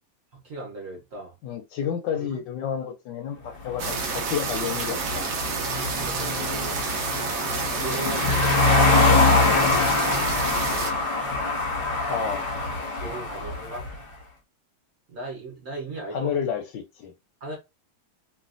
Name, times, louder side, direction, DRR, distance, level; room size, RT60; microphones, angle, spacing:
voice 1, 0.3-1.3 2.1-2.4 5.7-6.8 7.7-8.8 13.0-13.9 15.1-16.3 17.4-17.6, right 2 dB, 50° right, 1.2 m, -37 dB
voice 2, 1.4-5.2 12.1-12.4 16.1-17.1, left 7 dB, 75° left, 1.1 m, -30 dB
sound 1, 3.6-13.9, left 3 dB, 30° left, 1.0 m, -24 dB
sound 2, 3.8-10.9, right 5 dB, 65° right, 0.8 m, -29 dB
3.2 x 2.6 x 2.4 m
omnidirectional pair, 2.2 m